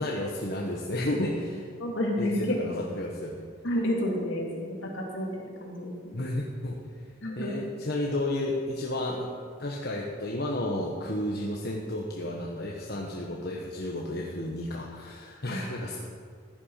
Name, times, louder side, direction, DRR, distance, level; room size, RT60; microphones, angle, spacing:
voice 1, 0.0-1.7 2.2-3.4 6.1-6.8 7.4-9.3 9.6-16.0, left 1 dB, 55° left, -2 dB, 1.3 m, -32 dB
voice 2, 1.8-2.8 3.6-6.1 7.2-7.7 15.5-15.6, left 1 dB, 70° left, -1 dB, 3.1 m, -30 dB
15.0 x 10.0 x 5.8 m, 2.1 s
head